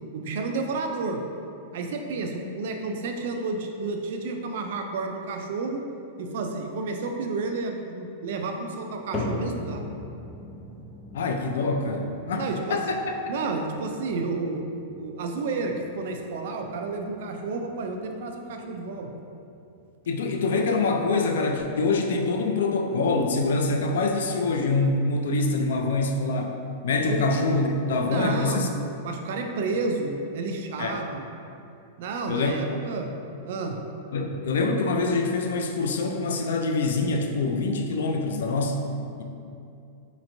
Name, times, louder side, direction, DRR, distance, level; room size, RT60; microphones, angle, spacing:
voice 1, 0.1-1.2 1.7-5.8 6.2-9.8 12.4-12.8 13.3-14.6 15.0-19.1 27.1-27.2 28.1-28.7 29.0-31.3 32.0-33.1 33.5-33.8, right 3 dB, 60° right, 3 dB, 0.4 m, -31 dB
sound 1, 9.1-25.5 25.8-26.3 26.9-27.0 27.8-27.9, left 2 dB, 15° left, 0.4 m, -41 dB
voice 2, 11.1-13.1 20.1-26.5 26.8-28.7 30.8-31.0 32.3-32.8 34.1-38.9, left 3 dB, 85° left, 3 dB, 0.4 m, -25 dB
4.2 x 3.0 x 2.6 m, 2.6 s
supercardioid pair, 165°, 0 cm